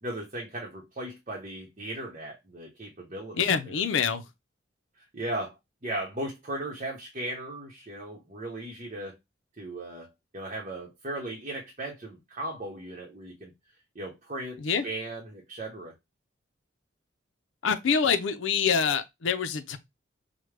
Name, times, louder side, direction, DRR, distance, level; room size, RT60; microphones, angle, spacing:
voice 1, 0.0-3.8 5.0-5.6 5.8-9.2 9.6-13.5 13.9-15.9, right 1 dB, 35° right, 0.8 m, -37 dB
voice 2, 3.3-4.2 14.6-14.8 17.6-19.8, left 6 dB, 85° left, 0.5 m, -26 dB
4.9 x 2.1 x 3.2 m
head